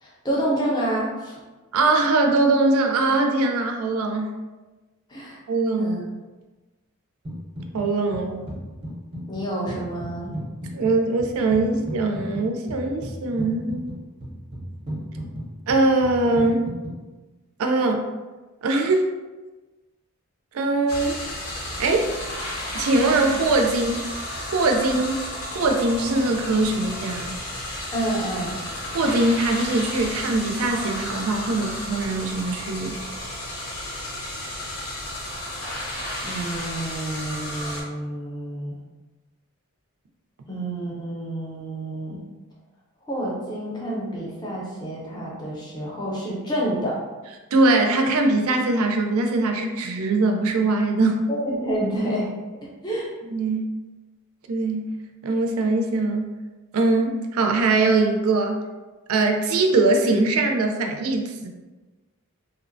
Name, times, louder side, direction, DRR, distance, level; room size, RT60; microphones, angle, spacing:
voice 1, 0.0-1.4 5.1-5.4 5.8-6.1 9.3-10.3 27.9-28.6 36.2-38.8 40.5-42.2 43.1-47.0 51.3-52.3 52.6-53.1, right 1 dB, 20° left, -4 dB, 0.5 m, -28 dB
voice 2, 1.7-4.4 5.5-6.0 7.7-8.5 10.7-13.9 15.7-16.7 17.6-18.1 18.6-19.1 20.5-21.2 21.8-22.1 22.7-24.1 24.5-27.3 28.9-33.0 47.5-51.3 53.3-53.7 54.5-54.9 55.2-56.3 56.7-58.6 59.1-61.5, right 2 dB, 70° right, 3 dB, 0.4 m, -22 dB
sound 1, 7.2-7.9 8.1-17.0, equal, 25° right, 0.6 m, -35 dB
sound 2, 20.9-37.8, left 1 dB, 70° left, 0.7 m, -33 dB
2.8 x 2.0 x 2.5 m, 1.2 s
head